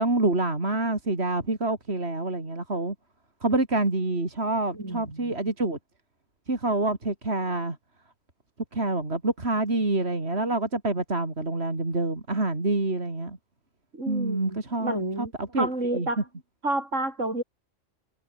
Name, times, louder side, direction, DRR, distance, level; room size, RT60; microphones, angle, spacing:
voice 1, 0.0-2.9 3.4-5.8 6.5-7.8 8.7-13.4 14.1-15.7 15.9-16.1, right 2 dB, 55° right, 4.1 m, -27 dB
voice 2, 4.7-5.4 13.9-15.3 15.6-16.2 16.6-17.4, right 2 dB, 70° right, 6.5 m, -30 dB
omnidirectional pair, 1.3 m